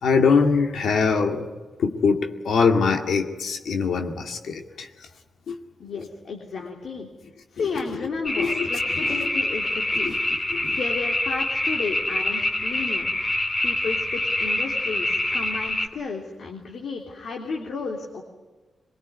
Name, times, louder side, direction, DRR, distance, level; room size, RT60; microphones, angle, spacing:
voice 1, 0.0-1.5 1.8-4.9 5.5-5.6 8.4-8.7 9.0-9.1 10.0-10.2 10.5-10.8, left 5 dB, 90° left, 4 dB, 2.3 m, -22 dB
voice 2, 5.8-7.1 7.5-10.1 10.7-13.1 13.6-18.2, left 4 dB, 70° left, 1 dB, 3.3 m, -33 dB
sound 1, 8.3-15.9, left 1 dB, 25° left, 2.9 m, -25 dB
23.5 x 23.0 x 9.6 m, 1.2 s
wide cardioid pair, 130°, 0 cm